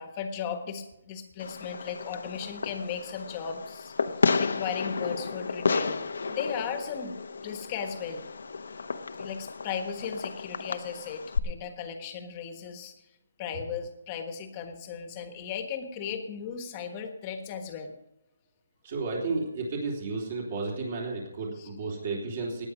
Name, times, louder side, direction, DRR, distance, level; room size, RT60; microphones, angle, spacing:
voice 1, 0.0-3.9 4.4-7.1 7.4-8.3 9.2-12.9 13.4-17.9 21.5-21.7, left 7 dB, 20° left, 6 dB, 1.4 m, -36 dB
Fireworks, 1.4-11.4, left 4 dB, 70° left, 0.9 m, -32 dB
voice 2, 18.8-22.7, right 3 dB, 40° right, -2 dB, 3.5 m, -32 dB
18.0 x 9.4 x 5.1 m, 0.85 s
hypercardioid pair, 170°, 0 cm